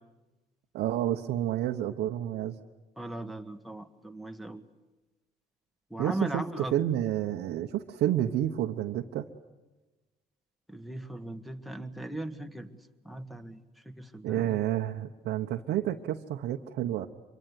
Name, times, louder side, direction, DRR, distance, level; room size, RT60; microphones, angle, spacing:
voice 1, 0.7-2.6 6.0-9.2 14.2-17.1, right 12 dB, 75° right, 1 dB, 1.2 m, -30 dB
voice 2, 3.0-4.6 5.9-6.7 10.7-12.7 13.0-14.6, right 1 dB, ahead, 6 dB, 1.7 m, -38 dB
25.5 x 23.5 x 9.7 m, 1.1 s
cardioid pair, 110°, 17 cm